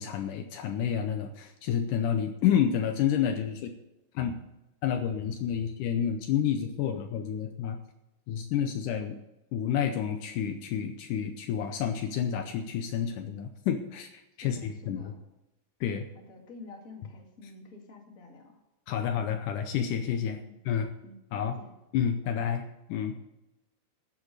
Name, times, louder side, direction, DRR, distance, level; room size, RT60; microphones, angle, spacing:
voice 1, 0.0-3.7 4.1-4.4 4.8-7.8 8.3-9.1 9.5-15.1 15.8-16.0 18.9-20.9 21.3-21.6 21.9-23.2, left 8 dB, 90° left, 7 dB, 1.8 m, -29 dB
voice 2, 14.4-15.2 16.1-18.6 20.4-20.6 21.0-21.8, left 3 dB, 30° left, 1 dB, 1.8 m, -49 dB
13.5 x 7.4 x 6.6 m, 0.95 s
omnidirectional pair, 4.6 m